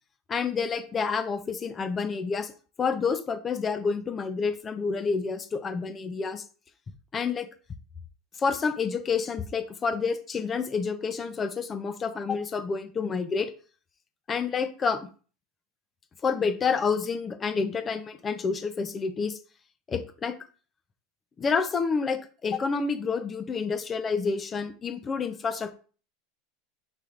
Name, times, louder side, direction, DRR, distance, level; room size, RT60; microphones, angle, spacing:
voice 1, 0.3-2.5 2.8-6.4 7.1-7.5 8.4-13.5 14.3-15.1 16.2-19.4 19.9-20.3 21.4-25.7, left 5 dB, 20° left, 10 dB, 0.4 m, -28 dB
5.7 x 3.3 x 2.4 m, 0.39 s
supercardioid pair, 145°, 0 cm